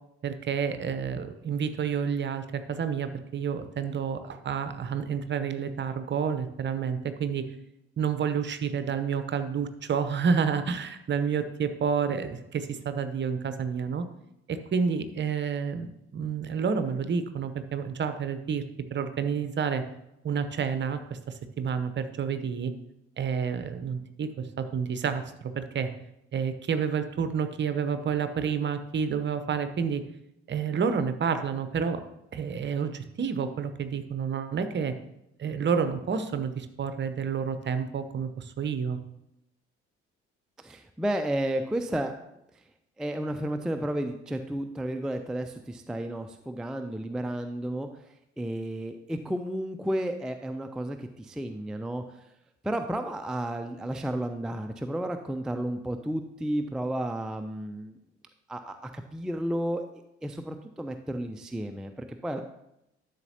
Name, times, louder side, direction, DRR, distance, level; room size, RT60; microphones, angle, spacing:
voice 1, 0.2-7.4 8.0-14.0 14.5-18.6 18.9-19.8 20.2-21.2 21.6-22.7 23.2-24.3 24.6-25.9 26.3-30.0 30.5-32.0 32.3-34.9 35.4-39.0, right 6 dB, 35° right, 10 dB, 0.8 m, -29 dB
voice 2, 40.6-42.1 43.0-47.9 48.4-52.0 52.6-58.0 58.5-59.8 60.2-62.4, right 1 dB, ahead, 6 dB, 0.4 m, -32 dB
12.0 x 6.6 x 2.8 m, 0.84 s
figure-of-eight pair, 50°, 34 cm